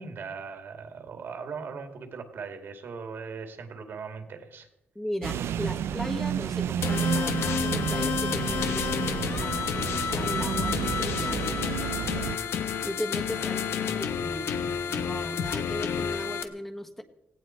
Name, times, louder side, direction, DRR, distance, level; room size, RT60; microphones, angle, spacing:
voice 1, 0.0-4.7 13.4-13.5, right 5 dB, 60° right, 6 dB, 2.5 m, -39 dB
voice 2, 4.9-11.4 12.8-13.6 13.9-17.0, equal, 5° left, 5 dB, 1.4 m, -37 dB
sound 1, 5.2-12.4, right 9 dB, 90° right, 0.5 m, -31 dB
sound 2, 6.8-16.4, left 7 dB, 90° left, 1.3 m, -30 dB
17.5 x 17.5 x 4.6 m, 0.86 s
wide cardioid pair, 135°, 4 cm